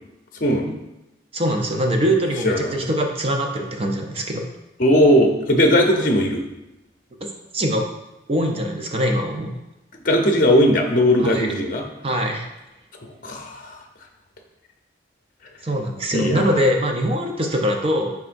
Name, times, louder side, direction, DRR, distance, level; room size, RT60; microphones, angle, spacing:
voice 1, 1.3-4.4 7.2-7.3 7.5-7.8 8.3-9.5 11.2-11.5 12.0-12.5 15.6-18.1, equal, 30° right, 2 dB, 0.6 m, -22 dB
voice 2, 4.8-6.4 10.0-11.8 13.2-13.8 16.1-16.6, equal, 45° left, 2 dB, 0.8 m, -18 dB
10.5 x 3.6 x 2.6 m, 0.95 s
head